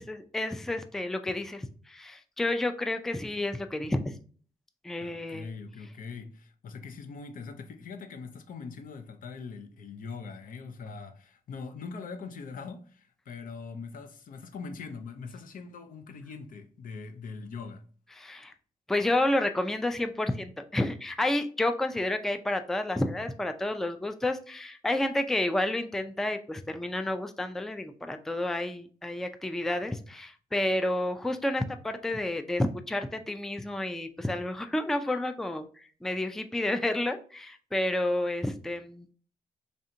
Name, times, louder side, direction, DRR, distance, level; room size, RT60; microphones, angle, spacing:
voice 1, 0.0-4.1 4.8-5.5 18.2-18.5 18.9-39.1, left 1 dB, 5° left, 0.3 m, -30 dB
voice 2, 5.0-17.8, left 4 dB, 70° left, 0.6 m, -42 dB
3.4 x 2.7 x 3.7 m
cardioid pair, 80°, 15 cm